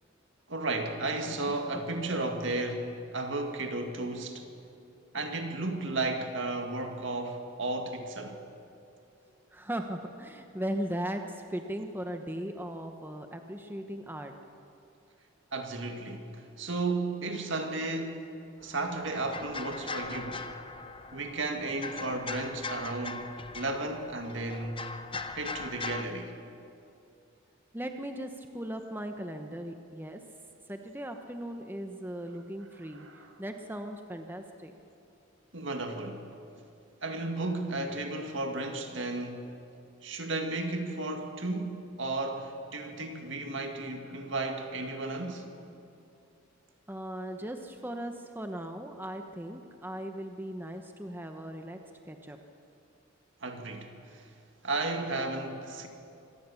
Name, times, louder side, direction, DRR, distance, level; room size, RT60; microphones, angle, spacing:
voice 1, 0.5-4.5 5.1-8.4 15.5-20.4 21.1-24.8 25.3-26.3 32.9-33.3 35.5-36.3 37.0-39.6 40.0-45.5 53.4-54.3 54.6-55.9, right 2 dB, 65° right, 2.2 m, -34 dB
voice 2, 9.5-14.3 27.7-30.2 30.7-33.1 33.4-34.7 46.9-51.8 52.0-52.4, right 1 dB, 10° right, 1.0 m, -38 dB
sound 1, 18.6-26.0, left 3 dB, 25° left, 0.8 m, -40 dB
25.0 x 18.0 x 7.1 m
head